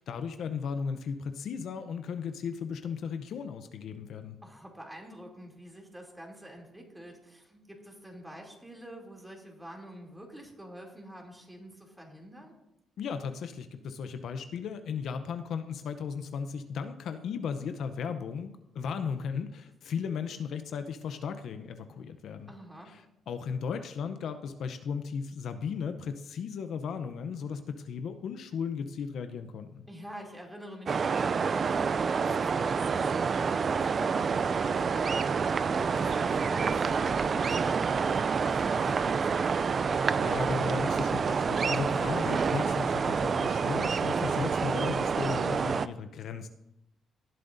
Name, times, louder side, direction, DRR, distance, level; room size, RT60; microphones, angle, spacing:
voice 1, 0.1-4.4 13.0-22.5 22.9-29.9 40.2-46.5, left 6 dB, 70° left, 9 dB, 0.7 m, -36 dB
voice 2, 4.4-12.5 22.5-23.0 29.9-39.6, equal, 10° right, -1 dB, 2.9 m, -47 dB
sound 1, 30.9-45.9, right 5 dB, 45° right, 0.4 m, -28 dB
18.0 x 7.7 x 2.7 m, 0.85 s
cardioid pair, 90°, 0 cm